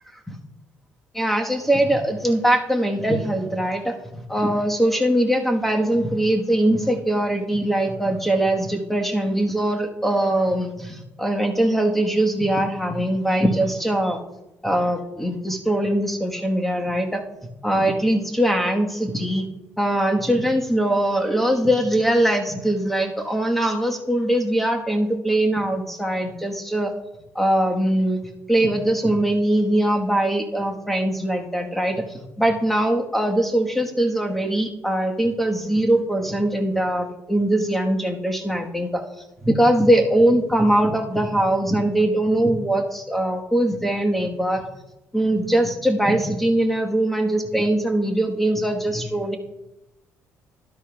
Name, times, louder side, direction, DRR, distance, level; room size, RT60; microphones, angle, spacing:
voice 1, 1.1-14.2 14.6-17.2 17.6-19.5 19.8-26.9 27.3-28.2 28.5-39.0 39.4-44.6 45.1-49.4, right 1 dB, 5° left, 3 dB, 1.3 m, -21 dB
12.5 x 10.5 x 2.3 m, 0.97 s
cardioid pair, 90°, 6 cm